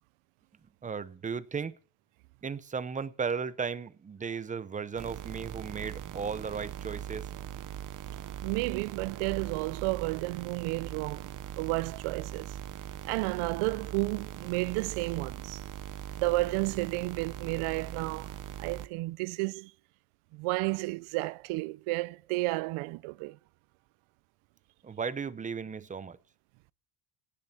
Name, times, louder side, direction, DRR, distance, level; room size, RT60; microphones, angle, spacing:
voice 1, 0.8-1.8 2.4-7.3 24.8-26.2, right 6 dB, 15° right, 0.6 m, -35 dB
sound 1, 5.0-18.9, right 11 dB, 40° right, 0.8 m, -41 dB
voice 2, 8.4-12.6 13.0-15.6 16.2-19.7 20.3-23.4, right 22 dB, 75° right, 0.6 m, -32 dB
18.0 x 7.6 x 7.1 m
cardioid pair, 145°, 50 cm